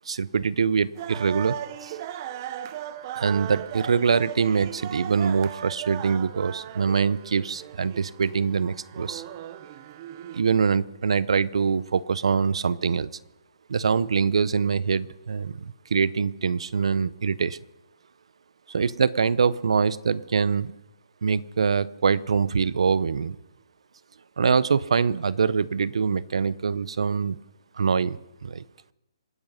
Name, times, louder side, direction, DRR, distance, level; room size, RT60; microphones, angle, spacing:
voice 1, 0.1-2.0 3.2-9.2 10.3-13.1 13.7-17.6 18.7-20.7 21.2-23.4 24.4-27.4 27.8-28.6, right 6 dB, 75° right, 20 dB, 0.7 m, -24 dB
sound 1, 1.0-10.4, right 11 dB, 35° right, 0.8 m, -37 dB
27.0 x 9.1 x 5.5 m, 0.95 s
hypercardioid pair, 155°, 3 cm